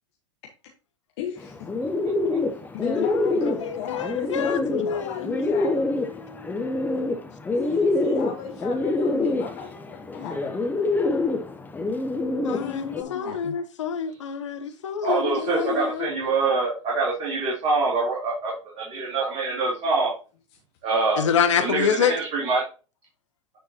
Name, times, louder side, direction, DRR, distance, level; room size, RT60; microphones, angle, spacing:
voice 1, 1.2-1.7 2.7-5.8 7.6-10.5 12.5-13.6 14.6-14.7 15.0-16.1, left 8 dB, 55° left, 1.3 m, -34 dB
Bird, 1.4-13.0, left 2 dB, 10° left, 0.8 m, -26 dB
voice 2, 2.9-3.3 3.6-5.6 6.2-6.3 12.4-15.8 21.2-22.1, left 7 dB, 75° left, 0.9 m, -27 dB
voice 3, 15.0-20.1 20.8-21.3 21.6-22.6, right 3 dB, 40° right, 3.0 m, -25 dB
9.1 x 4.5 x 2.9 m
hypercardioid pair, 95°, 16 cm